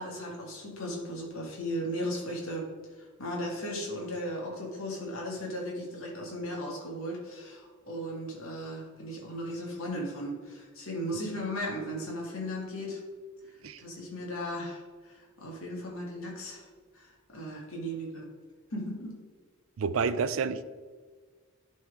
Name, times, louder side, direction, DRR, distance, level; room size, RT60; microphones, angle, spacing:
voice 1, 0.0-2.7 3.0-13.0 13.8-16.6 16.9-18.2 18.7-19.2, equal, 75° left, -2 dB, 2.1 m, -36 dB
voice 2, 19.8-20.6, right 5 dB, 65° right, 13 dB, 0.4 m, -29 dB
11.5 x 4.3 x 3.6 m, 1.5 s
head